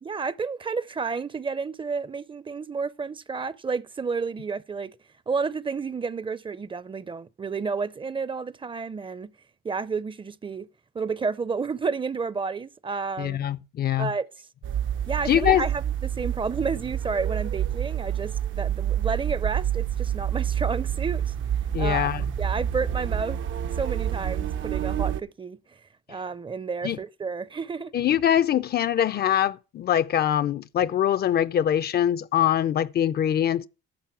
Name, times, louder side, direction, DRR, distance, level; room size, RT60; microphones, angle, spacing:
voice 1, 0.0-5.0 5.3-9.3 9.6-10.7 10.9-13.4 14.0-14.5 15.1-21.3 21.8-22.1 22.4-23.4 23.8-25.8 26.1-28.0, right 5 dB, 25° right, 0.5 m, -31 dB
voice 2, 13.2-14.1 15.3-15.6 21.7-22.2 26.8-27.0 27.9-33.7, left 10 dB, 50° left, 0.5 m, -23 dB
sound 1, 14.6-25.2, right 10 dB, 75° right, 0.7 m, -28 dB
10.5 x 6.7 x 5.8 m
cardioid pair, 90°, 20 cm